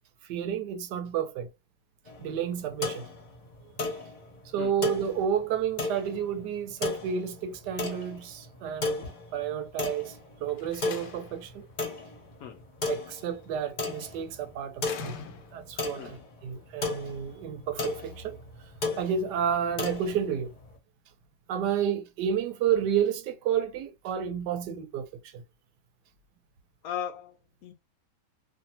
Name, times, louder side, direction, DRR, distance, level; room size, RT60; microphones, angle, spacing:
voice 1, 0.3-1.5 2.2-3.1 4.5-11.6 12.9-15.2 15.5-18.4 19.0-20.5 21.5-25.4, right 8 dB, 80° right, 1.2 m, -31 dB
sound 1, 2.1-20.8, left 3 dB, 40° left, 0.7 m, -36 dB
Slam, 10.5-11.5 13.0-13.5 14.8-15.8, left 7 dB, 90° left, 1.2 m, -43 dB
voice 2, 26.8-27.7, left 9 dB, 70° left, 0.9 m, -37 dB
2.7 x 2.6 x 2.8 m
omnidirectional pair, 1.8 m